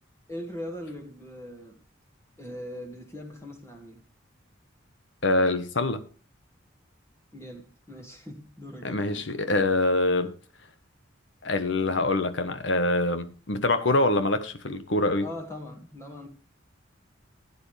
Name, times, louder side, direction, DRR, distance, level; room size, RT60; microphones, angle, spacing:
voice 1, 0.3-1.8 2.4-4.0 7.3-9.2 15.2-16.3, left 1 dB, 15° left, 2.0 m, -40 dB
voice 2, 5.2-6.0 8.8-10.3 11.4-15.3, left 2 dB, 70° left, 1.3 m, -25 dB
15.5 x 9.8 x 3.4 m
head